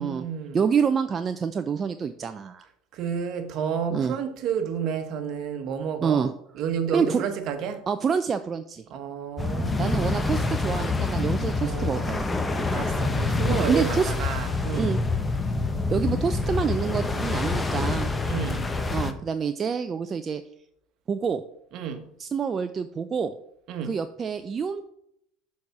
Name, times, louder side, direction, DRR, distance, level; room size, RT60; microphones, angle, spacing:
voice 1, 0.0-0.6 2.9-6.3 6.6-7.8 8.9-10.4 11.6-12.1 12.7-15.0 18.3-18.7 21.7-22.0 23.7-23.9, right 7 dB, 55° right, 1.1 m, -31 dB
voice 2, 0.5-2.7 3.9-4.2 6.0-6.3 6.9-7.2 7.9-8.8 9.8-12.3 13.5-14.1 14.8-15.0 15.9-18.1 18.9-20.4 21.1-21.4 22.2-23.3 23.8-24.8, right 6 dB, 35° right, 0.4 m, -27 dB
sound 1, 9.4-19.1, left 3 dB, 15° left, 0.8 m, -26 dB
6.5 x 4.2 x 5.9 m
hypercardioid pair, 90°, 0 cm